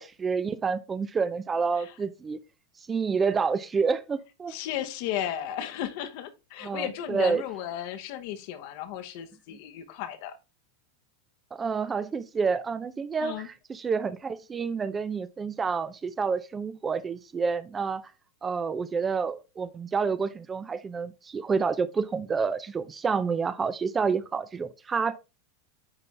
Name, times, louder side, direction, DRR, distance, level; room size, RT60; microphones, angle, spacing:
voice 1, 0.0-2.4 2.9-4.5 6.6-7.4 11.5-18.1 18.4-25.2, right 5 dB, 20° right, 0.5 m, -29 dB
voice 2, 4.5-10.4 13.2-13.5, left 11 dB, 60° left, 1.0 m, -35 dB
9.9 x 3.9 x 3.3 m
hypercardioid pair, 95°, 0 cm